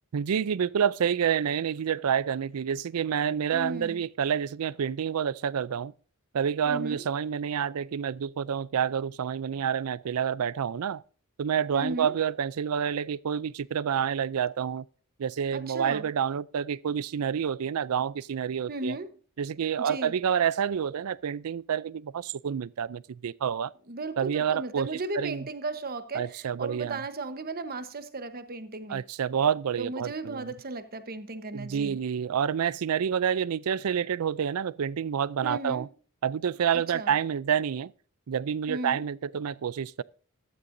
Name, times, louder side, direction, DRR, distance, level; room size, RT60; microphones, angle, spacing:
voice 1, 0.1-5.9 6.3-11.0 11.4-14.8 15.2-19.0 19.4-23.7 24.2-24.9 25.1-25.4 26.1-27.0 28.9-30.5 31.5-35.9 36.2-37.9 38.3-40.0, right 8 dB, 75° right, 0.4 m, -28 dB
voice 2, 3.5-4.0 6.7-7.0 11.7-12.2 15.5-16.1 18.7-19.1 19.8-20.1 23.9-29.0 29.8-32.0 35.4-35.9 36.7-37.1 38.7-39.0, right 2 dB, 45° right, 1.1 m, -36 dB
14.5 x 13.0 x 2.6 m
head